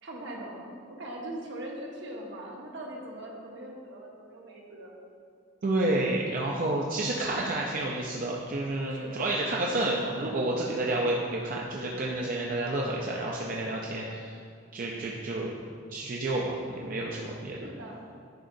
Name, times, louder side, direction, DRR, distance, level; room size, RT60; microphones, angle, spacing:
voice 1, 0.0-4.9 8.9-9.4 10.8-11.2 17.5-18.0, right 1 dB, 65° right, -1 dB, 0.9 m, -41 dB
voice 2, 5.6-14.3 14.7-15.5 15.9-17.6, right 2 dB, 45° right, -2 dB, 0.5 m, -30 dB
10.0 x 3.9 x 2.6 m, 2.3 s
head